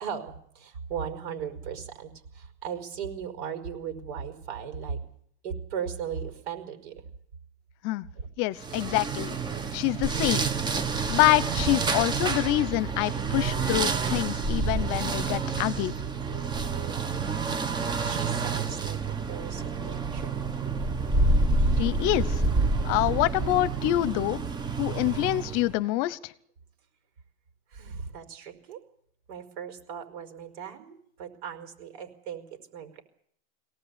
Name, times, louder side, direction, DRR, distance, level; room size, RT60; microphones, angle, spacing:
voice 1, 0.0-5.0 5.4-6.9 8.2-8.3 16.4-17.4 18.0-20.6 21.6-21.7 27.7-28.8 29.3-33.0, right 7 dB, 65° right, 5.1 m, -37 dB
voice 2, 8.4-9.4 9.7-10.4 11.1-15.9 21.8-22.4 22.8-24.4 24.8-26.3, left 17 dB, 40° left, 1.0 m, -26 dB
sound 1, 8.6-25.7, right 3 dB, 15° right, 0.9 m, -28 dB
23.5 x 18.0 x 8.3 m
supercardioid pair, 150°, 33 cm